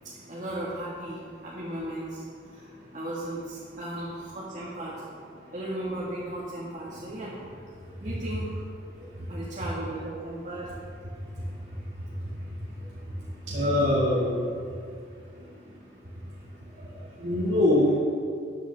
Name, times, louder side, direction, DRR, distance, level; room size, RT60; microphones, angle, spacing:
voice 1, 0.3-5.0 5.5-7.4 8.0-8.5 9.3-10.8, right 1 dB, 40° right, -8 dB, 1.9 m, -36 dB
voice 2, 13.5-14.4 17.2-18.0, left 1 dB, 70° right, -9 dB, 2.3 m, -23 dB
13.0 x 9.9 x 3.6 m, 2.3 s
head